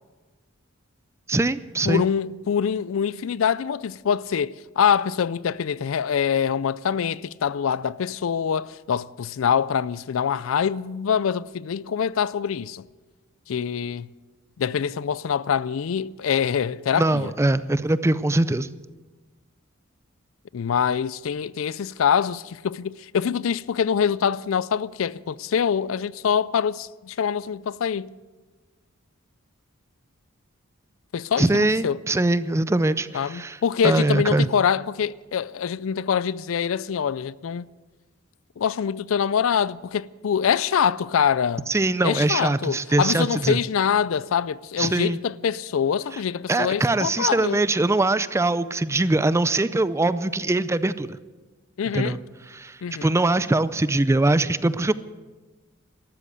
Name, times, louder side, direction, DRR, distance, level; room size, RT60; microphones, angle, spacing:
voice 1, 1.3-2.0 16.9-18.7 31.4-34.5 41.7-43.6 44.8-45.2 46.5-51.2 51.9-52.2 52.5-54.9, right 2 dB, 15° right, 0.4 m, -22 dB
voice 2, 1.8-12.8 13.5-14.1 14.6-17.3 20.5-28.1 31.1-32.0 33.1-37.7 38.6-41.7 42.0-47.6 51.8-52.2 52.8-53.1, left 7 dB, 65° left, 0.4 m, -24 dB
13.5 x 13.0 x 8.3 m
head